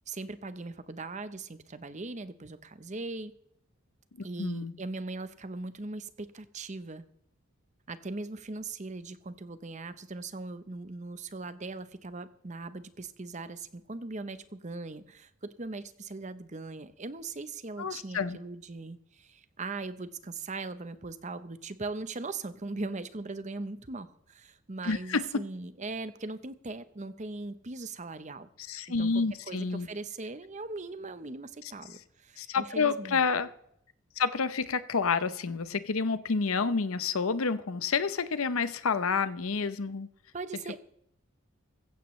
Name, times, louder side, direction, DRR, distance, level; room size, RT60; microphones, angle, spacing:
voice 1, 0.1-3.3 4.2-7.0 7.9-28.5 29.0-33.2 40.3-40.8, right 3 dB, 35° right, 12 dB, 0.8 m, -40 dB
voice 2, 4.4-4.7 17.8-18.4 24.8-25.4 28.6-29.9 32.4-33.5 34.2-40.1, left 5 dB, 90° left, 14 dB, 0.8 m, -29 dB
16.0 x 15.0 x 3.2 m, 0.72 s
head